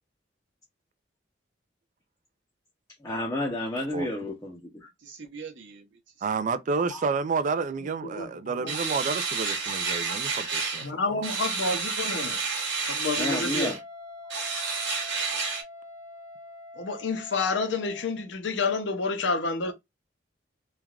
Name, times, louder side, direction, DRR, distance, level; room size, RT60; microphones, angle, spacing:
voice 1, 3.0-4.9 6.9-7.1 13.2-13.8, left 1 dB, 15° left, 0.6 m, -31 dB
voice 2, 5.0-6.3 19.6-19.7, right 5 dB, 85° right, 0.8 m, -44 dB
voice 3, 6.2-11.2, right 4 dB, 45° right, 0.3 m, -30 dB
voice 4, 8.6-9.0 10.8-12.4 12.9-13.7 16.8-19.7, left 4 dB, 75° left, 0.6 m, -29 dB
sound 1, 8.7-10.9 11.2-13.8 14.3-15.6, right 4 dB, 65° right, 1.1 m, -30 dB
Wind instrument woodwind instrument, 13.6-18.3, left 2 dB, 20° right, 1.2 m, -45 dB
3.2 x 2.3 x 2.3 m
head